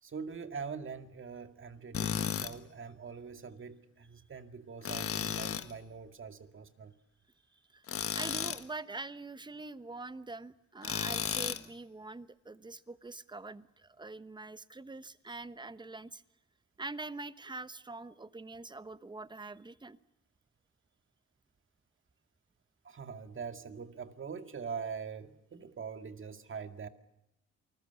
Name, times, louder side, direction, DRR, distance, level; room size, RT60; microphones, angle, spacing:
voice 1, 0.0-6.9 22.8-26.9, right 6 dB, 40° right, 2.2 m, -43 dB
Tools, 1.9-2.5 4.8-5.7 7.9-8.6 10.8-11.7, left 8 dB, 45° left, 1.4 m, -34 dB
voice 2, 8.1-16.2 16.8-20.0, right 3 dB, 15° right, 1.1 m, -44 dB
28.0 x 20.5 x 6.9 m
cardioid pair, 90°, 30 cm